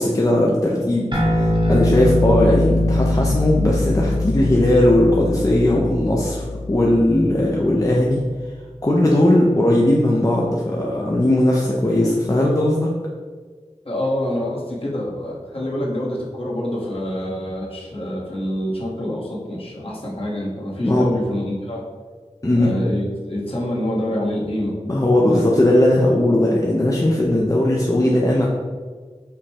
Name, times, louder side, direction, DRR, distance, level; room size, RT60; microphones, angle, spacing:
voice 1, 0.0-8.2 8.8-12.9 20.8-21.1 22.4-22.8 24.8-28.5, left 1 dB, 30° left, -3 dB, 0.5 m, -18 dB
sound 1, 1.1-7.9, left 1 dB, 40° right, 0.9 m, -22 dB
voice 2, 13.8-21.8 22.6-24.8 25.3-25.4, left 1 dB, 50° left, -5 dB, 1.2 m, -26 dB
5.1 x 2.2 x 4.2 m, 1.5 s
wide cardioid pair, 45°, 12 cm